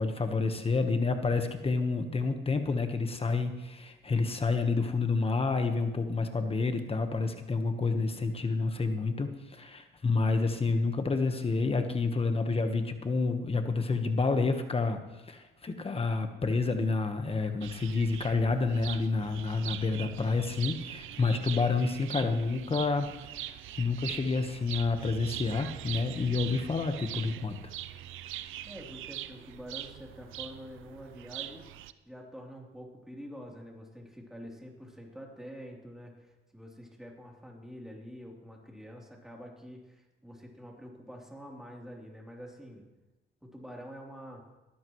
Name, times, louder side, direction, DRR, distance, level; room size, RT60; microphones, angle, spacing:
voice 1, 0.0-27.6, left 4 dB, 30° left, 7 dB, 1.3 m, -29 dB
sound 1, 17.6-31.9, right 13 dB, 85° right, 0.6 m, -42 dB
voice 2, 28.6-31.7 32.0-42.8 43.4-44.4, equal, ahead, -2 dB, 3.4 m, -46 dB
19.5 x 13.5 x 3.2 m, 1.1 s
cardioid pair, 90°, 20 cm